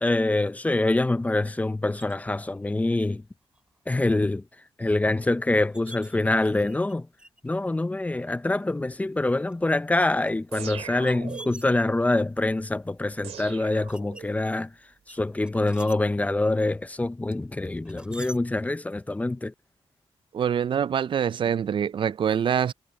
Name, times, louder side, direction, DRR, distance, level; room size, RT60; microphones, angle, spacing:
voice 1, 0.0-3.2 3.9-4.4 4.8-7.1 7.4-14.7 15.1-19.5, left 2 dB, 15° left, 0.5 m, -25 dB
sound 1, 2.0-2.2 3.0-3.1 3.5-3.9 4.4-4.5 5.2-5.3 5.6-6.9 7.2-7.5 8.2-8.3 9.2-9.5 10.3-12.2 12.8-13.2 13.9-14.6 15.1-16.0 17.3-18.4, right 1 dB, 10° right, 6.0 m, -46 dB
sound 2, 10.5-11.8 13.2-14.5, right 8 dB, 90° right, 2.6 m, -40 dB
voice 2, 20.3-22.7, right 8 dB, 50° right, 0.4 m, -25 dB
wide cardioid pair, 125°, 11 cm